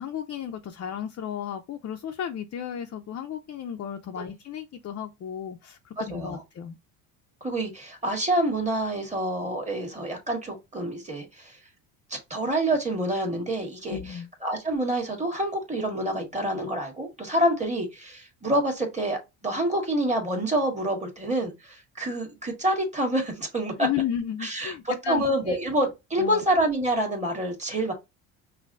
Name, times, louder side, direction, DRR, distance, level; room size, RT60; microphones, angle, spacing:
voice 1, 0.0-6.8 13.9-14.3 23.8-25.6 26.2-26.4, left 9 dB, 40° left, 0.6 m, -33 dB
voice 2, 6.0-6.4 7.4-11.6 12.1-14.0 14.4-23.9 24.4-24.7 25.1-27.9, right 1 dB, 15° right, 1.6 m, -27 dB
5.4 x 2.2 x 2.6 m
supercardioid pair, 85°, 41 cm